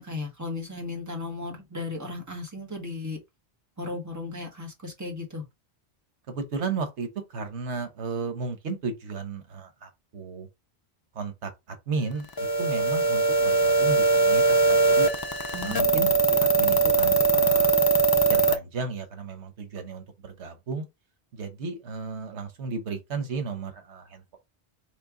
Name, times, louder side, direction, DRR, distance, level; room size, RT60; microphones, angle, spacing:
voice 1, 0.0-3.2 3.8-5.4 15.5-16.1, left 3 dB, 15° right, 1.4 m, -35 dB
voice 2, 6.3-10.5 11.1-11.5 11.9-12.3 12.6-15.1 15.6-17.7 18.3-20.8 21.3-24.4, right 4 dB, 90° right, 1.3 m, -34 dB
sound 1, 12.4-18.5, right 3 dB, 40° left, 0.3 m, -21 dB
4.5 x 3.3 x 3.7 m
omnidirectional pair, 1.1 m